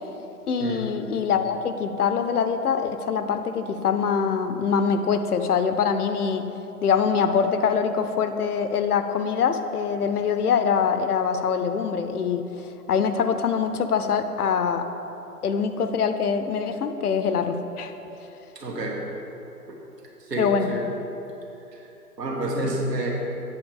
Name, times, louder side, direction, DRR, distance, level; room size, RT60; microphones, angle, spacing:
voice 1, 0.5-6.5 6.8-14.9 15.4-17.9 20.4-20.7, left 6 dB, 70° left, 8 dB, 0.8 m, -24 dB
voice 2, 18.6-19.0 19.7-19.8 20.3-20.8 21.7-21.8 22.2-23.1, right 1 dB, 85° right, -2 dB, 2.0 m, -28 dB
8.5 x 4.6 x 6.5 m, 2.9 s
hypercardioid pair, 150°, 47 cm